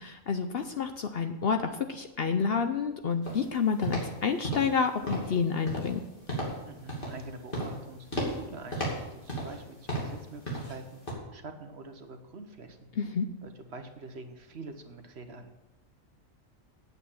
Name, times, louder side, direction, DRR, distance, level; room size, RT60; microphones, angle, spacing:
voice 1, 0.0-6.0 13.0-13.3, left 6 dB, 55° left, 7 dB, 0.7 m, -29 dB
sound 1, 3.2-3.5 3.8-4.1 4.4-4.8 5.1-5.3 5.7-6.0 6.3-6.6 6.9-7.2 7.5-7.8 8.1-8.4 8.7-9.6 9.9-10.2 10.5-10.8 11.1-11.2, right 1 dB, 40° left, 2.8 m, -34 dB
voice 2, 6.6-11.0 11.3-12.9 13.4-15.6, right 3 dB, 55° right, 7 dB, 1.2 m, -45 dB
8.9 x 8.1 x 7.2 m, 1.0 s
omnidirectional pair, 1.4 m